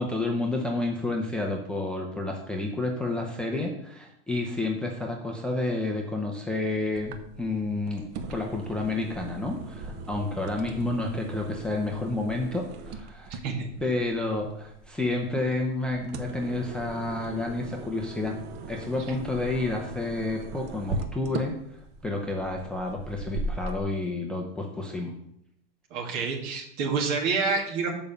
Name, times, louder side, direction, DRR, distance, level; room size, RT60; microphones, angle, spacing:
voice 1, 0.0-13.4 13.8-18.4 18.7-21.5 22.0-25.1, left 2 dB, 5° left, 0 dB, 0.6 m, -30 dB
sound 1, 7.0-23.8, right 3 dB, 35° right, 0.7 m, -39 dB
voice 2, 25.9-27.9, right 4 dB, 50° right, 1 dB, 2.1 m, -28 dB
7.0 x 5.3 x 6.8 m, 0.76 s
supercardioid pair, 165°, 30 cm